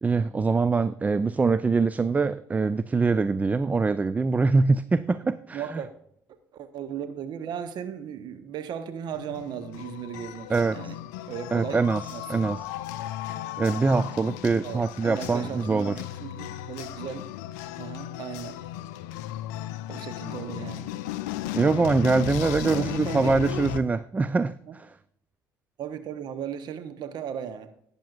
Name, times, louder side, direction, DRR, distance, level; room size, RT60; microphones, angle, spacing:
voice 1, 0.0-5.8 10.5-10.9 11.5-12.0 12.3-12.6 13.6-15.9 21.5-24.9, right 4 dB, 15° right, 14 dB, 0.3 m, -24 dB
voice 2, 5.1-5.9 6.5-11.0 11.3-12.4 14.6-17.3 17.8-18.6 19.9-20.9 22.6-23.5 24.7-24.8 25.8-27.7, right 8 dB, 45° right, 10 dB, 0.9 m, -36 dB
sound 1, 9.1-23.8, left 13 dB, 65° left, 0.5 m, -35 dB
19.0 x 6.8 x 2.5 m, 0.68 s
figure-of-eight pair, 55°, 10 cm